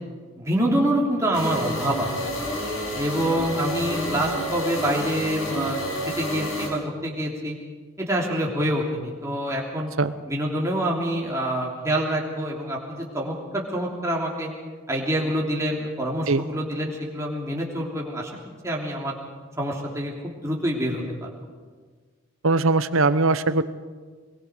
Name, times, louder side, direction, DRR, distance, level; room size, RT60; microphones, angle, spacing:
voice 1, 0.4-2.4 2.9-7.6 8.0-9.9 10.3-14.5 14.9-18.3 18.6-19.2 19.6-21.3, right 1 dB, 15° right, -2 dB, 3.3 m, -26 dB
sound 1, 1.3-6.7, equal, 75° left, 5.8 m, -30 dB
voice 2, 22.4-23.6, right 3 dB, 80° right, 13 dB, 1.0 m, -20 dB
23.0 x 23.0 x 5.2 m, 1.5 s
head